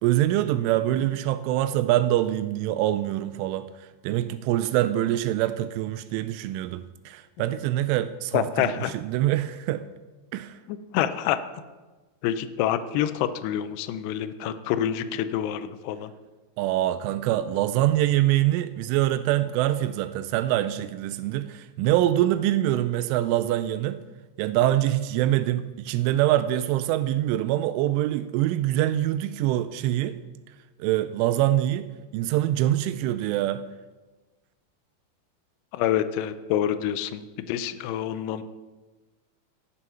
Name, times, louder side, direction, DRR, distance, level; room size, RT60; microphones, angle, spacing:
voice 1, 0.0-3.7 4.0-9.8 10.3-10.6 16.6-24.0 24.4-30.2 30.8-33.6, right 13 dB, 90° right, 11 dB, 3.0 m, -24 dB
voice 2, 8.3-8.9 10.7-11.4 12.2-16.1 35.7-38.4, left 10 dB, 85° left, 11 dB, 2.3 m, -27 dB
18.5 x 6.2 x 5.7 m, 1.2 s
omnidirectional pair, 5.5 m